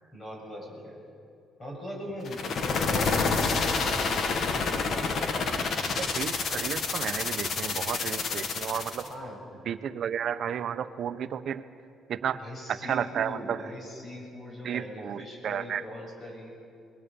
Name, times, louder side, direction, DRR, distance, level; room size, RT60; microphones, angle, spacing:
voice 1, 0.1-1.0 1.6-6.3 9.0-9.5 12.3-16.6, left 1 dB, 30° left, -1 dB, 7.7 m, -40 dB
sound 1, 2.2-9.1, left 4 dB, 55° left, 1.8 m, -28 dB
voice 2, 6.0-9.0 9.7-11.6 12.1-12.4 12.7-13.7 14.6-15.8, right 8 dB, 55° right, 11 dB, 0.9 m, -32 dB
27.5 x 21.5 x 7.0 m, 2.7 s
cardioid pair, 120°, 0 cm